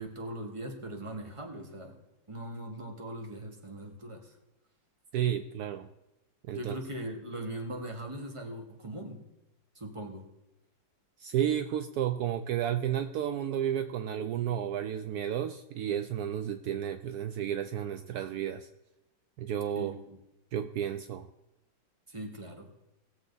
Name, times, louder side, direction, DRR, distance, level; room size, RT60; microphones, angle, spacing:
voice 1, 0.0-2.0 2.3-4.3 6.5-9.2 9.7-10.2 19.8-20.0 22.1-22.7, right 1 dB, 15° right, 3 dB, 1.4 m, -40 dB
voice 2, 5.1-5.9 6.4-6.8 11.2-18.7 19.4-19.9 20.5-21.3, right 10 dB, 80° right, 9 dB, 0.8 m, -32 dB
18.5 x 7.2 x 4.1 m, 0.94 s
omnidirectional pair, 2.2 m